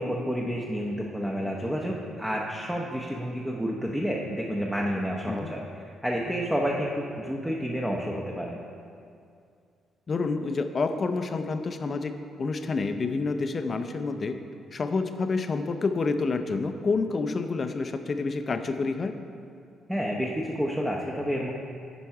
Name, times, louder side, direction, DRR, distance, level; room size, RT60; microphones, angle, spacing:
voice 1, 0.0-5.6 6.0-8.6 19.9-21.5, equal, 5° right, -2 dB, 0.8 m, -29 dB
voice 2, 10.1-14.4 14.7-19.1, left 4 dB, 40° left, 8 dB, 0.6 m, -28 dB
10.0 x 5.2 x 4.8 m, 2.4 s
cardioid pair, 90°, 0 cm